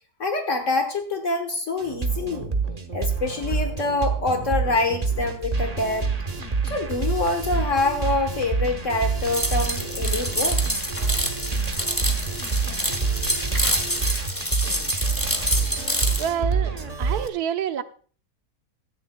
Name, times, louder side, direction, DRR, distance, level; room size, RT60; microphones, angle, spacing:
voice 1, 0.2-2.5 2.9-6.1 6.6-10.6 12.7-12.8, left 2 dB, 55° left, 4 dB, 1.6 m, -25 dB
sound 1, 1.8-17.3, right 4 dB, 30° right, 0.9 m, -27 dB
sound 2, 9.2-16.3, equal, 10° left, 1.7 m, -27 dB
voice 2, 16.2-17.8, right 9 dB, 80° right, 9 dB, 1.4 m, -28 dB
16.5 x 13.0 x 2.2 m, 0.43 s
omnidirectional pair, 1.6 m